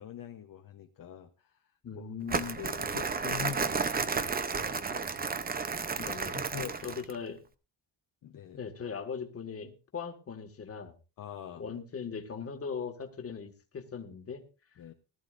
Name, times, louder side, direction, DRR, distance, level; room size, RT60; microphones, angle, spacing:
voice 1, 0.0-2.1 2.6-5.3 6.3-6.8 8.2-8.6 11.2-11.6 14.8-14.9, left 9 dB, 50° left, 3 dB, 1.0 m, -44 dB
voice 2, 1.8-2.7 6.0-6.5 6.8-7.4 8.6-10.9 11.6-14.5, left 6 dB, 35° left, 5 dB, 1.7 m, -39 dB
Crumpling crinkling, 2.3-7.2, right 5 dB, 20° right, 0.6 m, -32 dB
19.0 x 13.5 x 2.5 m, 0.31 s
cardioid pair, 170°, 42 cm